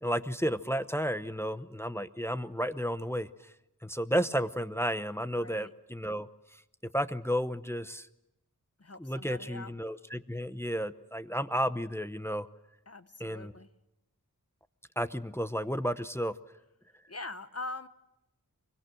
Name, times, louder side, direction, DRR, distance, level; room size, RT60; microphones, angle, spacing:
voice 1, 0.0-3.3 3.8-6.3 6.8-8.1 9.0-12.5 13.2-13.5 15.0-16.4, equal, 5° left, 11 dB, 0.8 m, -32 dB
voice 2, 5.4-5.7 8.8-9.7 12.9-13.7 17.1-17.9, left 2 dB, 45° left, 11 dB, 1.1 m, -42 dB
25.0 x 23.0 x 7.8 m, 0.91 s
wide cardioid pair, 60°, 35 cm